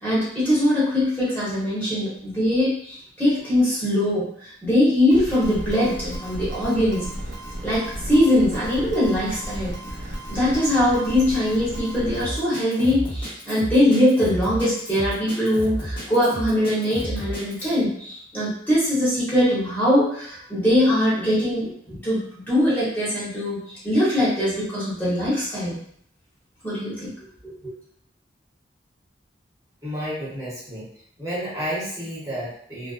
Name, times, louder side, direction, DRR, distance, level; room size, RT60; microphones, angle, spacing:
voice 1, 0.0-7.1 7.6-9.7 10.3-25.8 26.6-27.1 27.6-27.7, left 1 dB, 10° left, -10 dB, 1.0 m, -22 dB
sound 1, 5.1-12.3, equal, 85° right, 0.7 m, -34 dB
Drum kit, 12.2-17.7, equal, 30° left, 1.1 m, -32 dB
voice 2, 29.8-30.9 31.2-32.9, equal, 20° right, -10 dB, 0.9 m, -31 dB
2.4 x 2.1 x 2.4 m, 0.64 s
head